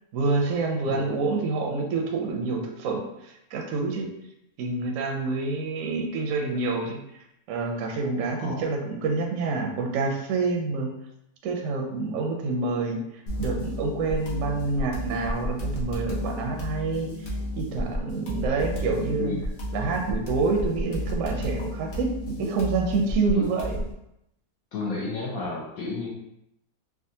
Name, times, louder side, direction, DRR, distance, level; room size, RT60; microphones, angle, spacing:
voice 1, 0.1-3.0 3.5-4.1 4.6-7.0 7.5-10.9 11.4-13.0 13.4-17.1 17.6-19.3 19.7-23.8, right 3 dB, 70° right, 1 dB, 0.8 m, -27 dB
sound 1, 13.3-23.9, equal, 55° left, 0.5 m, -32 dB
voice 2, 24.7-26.1, left 3 dB, 70° left, -5 dB, 1.0 m, -31 dB
3.5 x 2.2 x 2.6 m, 0.82 s
omnidirectional pair, 1.6 m